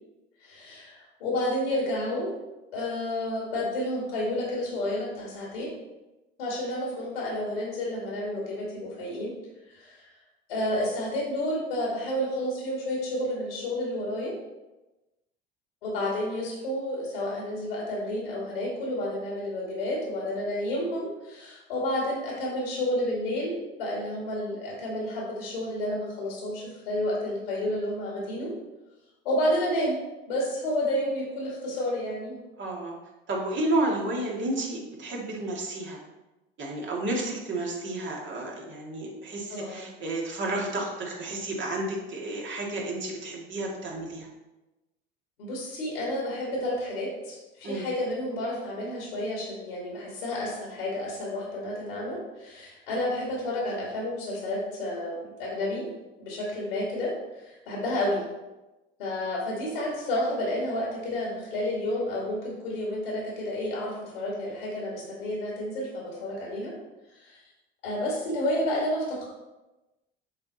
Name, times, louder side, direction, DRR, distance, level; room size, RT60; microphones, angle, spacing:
voice 1, 0.4-2.3 2.7-5.7 6.4-9.3 9.7-10.1 10.5-14.4 15.8-28.5 29.2-30.0 30.3-32.3 39.5-39.9 45.4-55.9 56.2-58.2 59.0-66.8 67.1-67.4 67.8-69.2, left 1 dB, 80° left, -4 dB, 1.9 m, -30 dB
voice 2, 32.6-32.9 33.3-36.0 36.6-44.3 47.6-47.9, right 2 dB, 40° right, -2 dB, 2.0 m, -31 dB
6.7 x 4.2 x 4.0 m, 1.0 s
hypercardioid pair, 70°, 29 cm